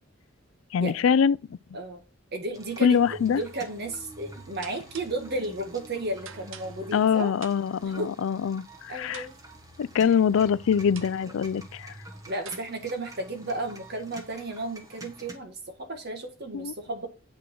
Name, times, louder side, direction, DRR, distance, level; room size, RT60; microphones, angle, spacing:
voice 1, 0.7-1.4 2.8-3.4 6.9-9.2 9.8-11.9 16.5-16.7, left 7 dB, 70° left, 0.3 m, -24 dB
voice 2, 2.3-3.0 3.3-7.3 7.8-8.1 8.9-9.3 12.3-17.1, right 2 dB, 50° right, 1.8 m, -33 dB
sound 1, 2.5-15.4, right 1 dB, 15° right, 1.3 m, -47 dB
sound 2, 3.3-3.6 4.6-5.3 6.2-7.1 7.4-7.9 9.1-9.7 11.0-11.3 12.5-12.6, right 8 dB, 65° right, 0.7 m, -47 dB
8.3 x 6.2 x 4.4 m
head